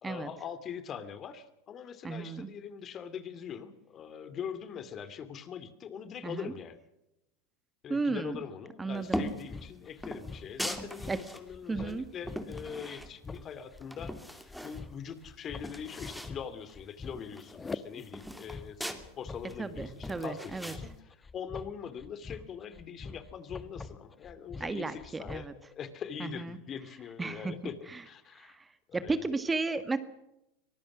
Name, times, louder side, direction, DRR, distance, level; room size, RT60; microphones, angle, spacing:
voice 1, 0.0-6.8 7.8-18.8 19.2-28.6 28.9-29.3, left 7 dB, 35° left, 12 dB, 2.5 m, -42 dB
voice 2, 2.0-2.5 6.2-6.5 7.9-8.4 8.8-9.2 11.1-11.2 11.7-12.0 19.6-20.7 24.6-25.5 26.2-26.6 27.2-27.5 27.9-28.0 28.4-28.6 28.9-30.0, right 3 dB, 15° right, 11 dB, 1.6 m, -34 dB
sound 1, 9.1-9.5 10.0-11.4 11.9-13.4 13.8-14.8 15.2-15.3 15.5-16.4 16.7-16.8 17.1-19.0 19.5-20.8, equal, ahead, 2.7 m, -39 dB
sound 2, 9.2-25.6, left 4 dB, 15° left, 1.2 m, -45 dB
24.0 x 19.0 x 6.2 m, 0.88 s
hypercardioid pair, 95°, 0 cm